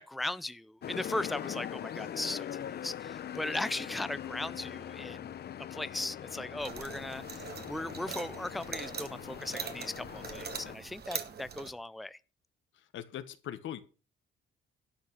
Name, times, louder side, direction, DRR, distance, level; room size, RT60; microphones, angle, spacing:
voice 1, 0.0-5.4 5.7-12.2, left 2 dB, ahead, 0.5 m, -38 dB
sound 1, 0.8-10.8, left 10 dB, 55° left, 0.8 m, -42 dB
sound 2, 6.6-11.7, right 7 dB, 55° right, 2.0 m, -42 dB
voice 2, 12.7-13.8, left 11 dB, 75° left, 1.4 m, -42 dB
11.5 x 5.9 x 6.6 m
cardioid pair, 90°, 20 cm